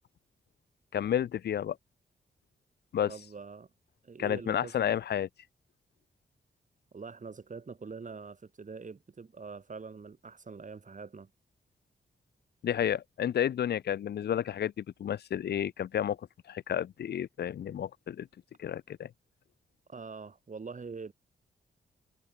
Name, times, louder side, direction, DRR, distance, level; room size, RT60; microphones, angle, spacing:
voice 1, 0.9-1.8 2.9-3.1 4.2-5.3 12.6-16.2 16.5-18.3 18.6-19.1, left 10 dB, 65° left, 0.5 m, -31 dB
voice 2, 3.1-3.7 4.0-5.0 6.9-11.3 19.9-21.1, right 4 dB, 45° right, 4.6 m, -44 dB
cardioid pair, 80°, 18 cm